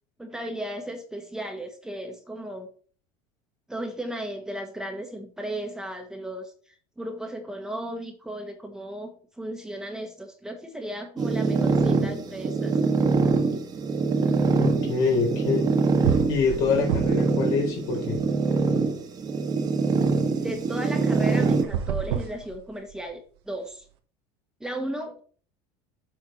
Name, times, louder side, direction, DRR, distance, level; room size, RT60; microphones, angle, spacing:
voice 1, 0.2-2.7 3.7-12.7 20.4-23.9 24.6-25.2, right 1 dB, 5° right, 3 dB, 1.3 m, -35 dB
sound 1, 11.2-21.6, right 4 dB, 30° right, 1.4 m, -24 dB
voice 2, 14.6-15.7 16.3-18.2, left 4 dB, 70° left, -1 dB, 4.2 m, -25 dB
sound 2, 15.6-15.7 16.0-17.4 17.7-18.8 21.5-23.1, right 9 dB, 85° right, 1.2 m, -30 dB
7.6 x 4.5 x 5.2 m, 0.43 s
supercardioid pair, 115°, 13 cm